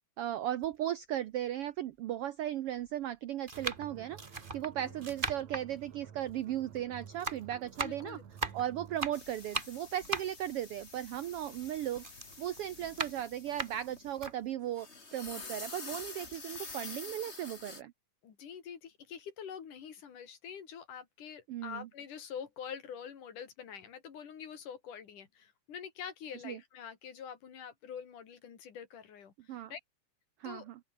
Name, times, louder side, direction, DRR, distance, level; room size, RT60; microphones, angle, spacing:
voice 1, 0.2-4.2 4.5-8.2 8.5-12.0 12.4-14.9 15.1-17.9 21.5-21.9 26.4-26.6 29.5-29.7 30.4-30.8, right 12 dB, 80° right, 1.3 m, -36 dB
sound 1, 0.6-0.7 1.6-1.7 2.7-2.9 3.4-6.8 7.1-11.6 12.0-14.4 14.9-15.0 15.3-16.2 16.5-16.7, right 3 dB, 20° right, 1.7 m, -39 dB
sound 2, 3.5-9.2, right 8 dB, 65° right, 3.6 m, -51 dB
voice 2, 7.8-8.2 15.3-15.5 18.2-29.8 30.4-30.7, left 7 dB, 80° left, 4.3 m, -46 dB
sound 3, 9.1-14.4 14.7-17.8, left 3 dB, 20° left, 2.6 m, -48 dB
open air
omnidirectional pair, 3.6 m